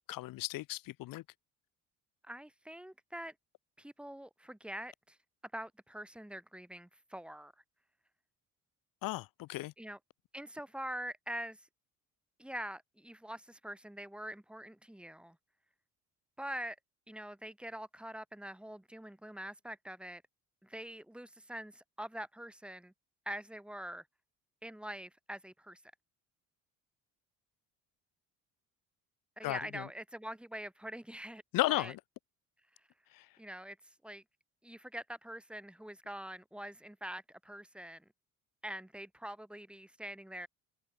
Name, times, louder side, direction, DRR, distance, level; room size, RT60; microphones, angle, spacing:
voice 1, 0.1-1.2 9.0-9.7 29.4-29.9 31.5-32.0 33.1-33.3, left 18 dB, 80° left, 1.9 m, -35 dB
voice 2, 2.2-3.3 3.8-5.2 5.5-7.5 9.8-10.0 10.3-11.7 12.4-15.4 16.4-16.8 17.1-20.2 20.6-22.9 23.3-24.1 24.6-25.8 29.4-31.4 31.7-31.9 33.4-33.8 34.0-34.2 34.6-38.1 38.6-40.5, right 1 dB, 5° right, 5.1 m, -44 dB
cardioid pair, 140°, 33 cm